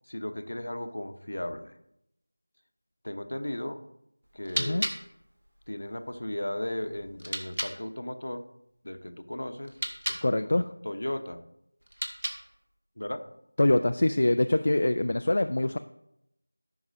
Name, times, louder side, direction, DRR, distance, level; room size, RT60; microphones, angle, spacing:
voice 1, 0.1-1.7 3.0-3.8 4.3-4.9 5.7-8.5 8.8-9.8 10.1-11.4 13.0-13.3, left 1 dB, 55° left, 8 dB, 0.9 m, -36 dB
sound 1, 4.2-7.8 9.6-10.3 11.8-12.6, right 1 dB, 60° right, 1.4 m, -36 dB
voice 2, 4.6-4.9 10.2-10.6 13.6-15.8, left 1 dB, 40° left, 8 dB, 0.3 m, -24 dB
14.0 x 6.0 x 2.7 m, 0.81 s
figure-of-eight pair, 170°, 0 cm